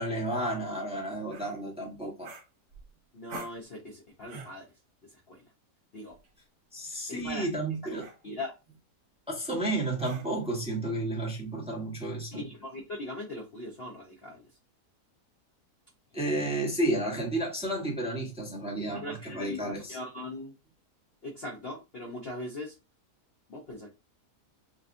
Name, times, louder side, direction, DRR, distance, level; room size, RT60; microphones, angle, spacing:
voice 1, 0.0-2.3 6.7-8.1 9.3-12.4 16.1-20.0, right 1 dB, 5° right, 0.9 m, -32 dB
sound 1, 1.3-1.6 2.2-2.9 3.3-3.6 4.3-4.6 6.1-6.3 7.1-7.4 8.0-8.2 10.0-10.5, right 2 dB, 65° right, 1.3 m, -46 dB
voice 2, 3.1-4.7 5.1-5.4 5.9-6.2 7.1-7.5 7.8-8.5 12.3-14.5 16.1-16.5 18.9-20.5 21.2-22.7 23.5-23.9, left 2 dB, 50° left, 0.8 m, -40 dB
5.0 x 2.3 x 2.5 m
omnidirectional pair, 1.8 m